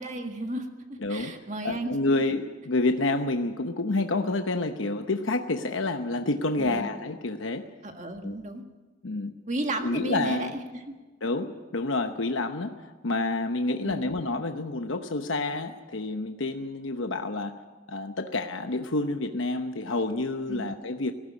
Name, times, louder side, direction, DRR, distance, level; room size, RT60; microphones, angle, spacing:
voice 1, 0.0-2.3 6.6-6.9 7.8-8.6 9.5-10.6 13.8-14.1 20.5-20.7, right 1 dB, 35° right, 5 dB, 1.7 m, -34 dB
voice 2, 1.0-1.3 1.6-7.7 8.2-8.4 9.0-9.3 9.8-10.5 11.2-17.6 17.9-21.1, left 2 dB, 75° left, 6 dB, 1.0 m, -28 dB
18.5 x 15.5 x 9.7 m, 1.3 s
head